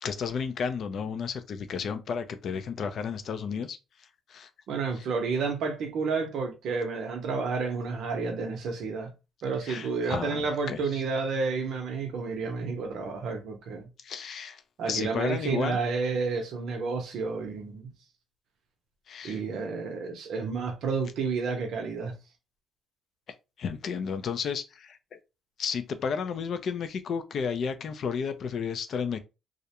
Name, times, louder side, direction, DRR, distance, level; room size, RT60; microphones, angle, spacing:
voice 1, 0.0-3.8 4.3-4.5 5.0-5.1 9.6-10.8 14.0-15.8 19.1-19.4 23.6-25.2 25.6-29.2, left 6 dB, 60° left, 0.4 m, -32 dB
voice 2, 4.7-9.1 9.4-13.9 14.8-17.9 19.2-22.1, right 4 dB, 75° right, 0.6 m, -30 dB
2.4 x 2.1 x 2.8 m
cardioid pair, 90°, 0 cm